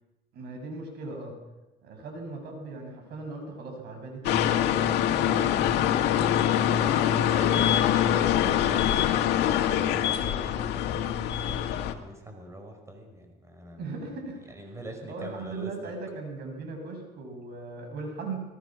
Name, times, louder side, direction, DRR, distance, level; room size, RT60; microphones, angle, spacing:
voice 1, 0.3-1.3 1.8-4.5 6.9-8.0 13.8-14.6 15.1-18.4, right 3 dB, 70° right, 4 dB, 7.4 m, -38 dB
sound 1, 4.2-11.9, left 10 dB, 90° left, 1.9 m, -24 dB
voice 2, 5.2-5.6 5.9-6.1 6.8-8.1 8.4-10.7 11.5-13.9 14.5-15.9, right 1 dB, 15° right, 4 dB, 5.2 m, -43 dB
25.5 x 20.5 x 6.3 m, 1.0 s
cardioid pair, 110°, 17 cm